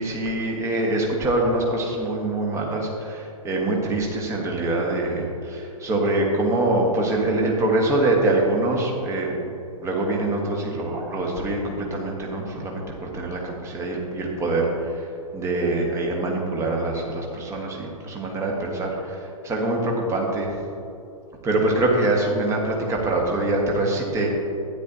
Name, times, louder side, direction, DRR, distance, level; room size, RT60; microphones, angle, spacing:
voice 1, 0.0-9.3 9.8-20.5 21.4-24.3, right 2 dB, 15° right, -1 dB, 1.5 m, -24 dB
12.0 x 9.7 x 2.8 m, 2.7 s
figure-of-eight pair, 110°, 18 cm